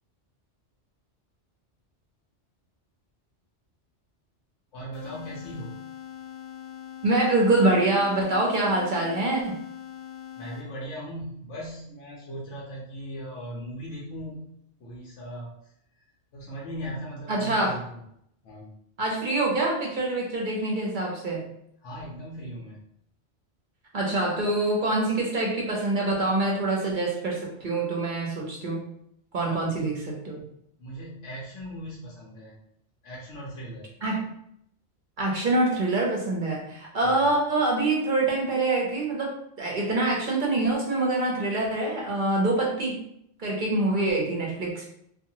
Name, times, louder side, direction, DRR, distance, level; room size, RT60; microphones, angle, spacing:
voice 1, 4.7-5.8 10.4-14.5 14.8-15.5 16.3-18.0 18.4-18.7 21.8-22.8 29.4-29.9 30.8-32.6 33.0-33.9 37.0-37.2, equal, 80° left, -4 dB, 1.0 m, -38 dB
sound 1, 4.9-11.0, left 10 dB, 55° left, 0.7 m, -42 dB
voice 2, 7.0-9.6 17.3-17.8 19.0-21.5 23.9-28.8 29.3-30.0 30.2-30.4 34.0-34.2 35.2-43.0 43.4-44.9, right 2 dB, 50° right, -2 dB, 0.7 m, -25 dB
2.7 x 2.5 x 2.8 m, 0.74 s
omnidirectional pair, 1.2 m